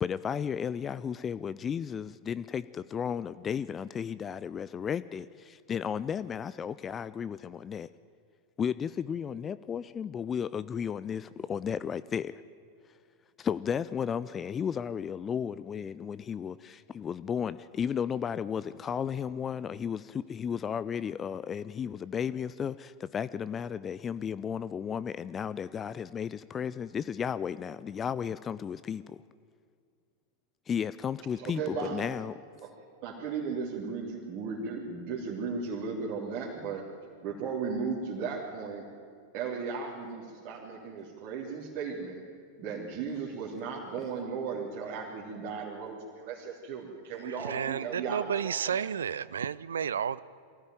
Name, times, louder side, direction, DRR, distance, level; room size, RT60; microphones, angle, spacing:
voice 1, 0.0-7.9 8.6-12.3 13.4-29.2 30.7-32.3, left 7 dB, 25° left, 0.5 m, -34 dB
voice 2, 31.4-32.1 32.6-32.7 33.0-36.9 37.2-38.8 39.3-42.2 42.6-48.9, right 5 dB, 40° right, 3.4 m, -36 dB
voice 3, 47.2-50.2, right 8 dB, 65° right, 0.5 m, -32 dB
23.0 x 15.5 x 9.3 m
figure-of-eight pair, 90°, 0 cm